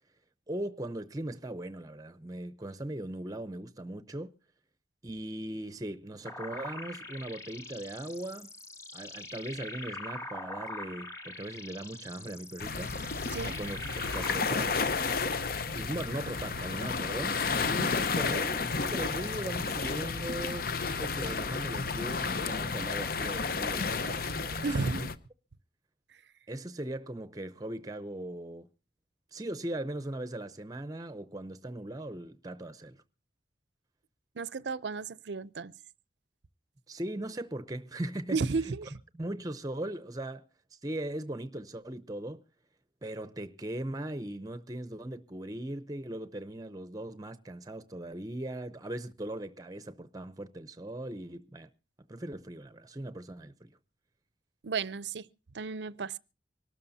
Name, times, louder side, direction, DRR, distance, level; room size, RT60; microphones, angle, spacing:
voice 1, 0.5-4.3 5.0-8.5 8.9-13.2 13.4-14.8 15.7-25.1 26.5-28.7 29.3-33.0 36.9-38.4 38.6-38.7 39.1-40.4 40.8-42.4 43.0-51.7 52.1-53.7, right 1 dB, 20° right, 0.7 m, -39 dB
sound 1, 6.3-14.3, left 2 dB, 20° left, 1.9 m, -43 dB
sound 2, 12.6-25.2, left 4 dB, 55° left, 0.8 m, -32 dB
voice 2, 24.6-25.1 34.4-35.7 38.3-38.9 54.6-55.3 55.5-56.2, right 4 dB, 75° right, 0.6 m, -33 dB
25.0 x 12.5 x 2.7 m
head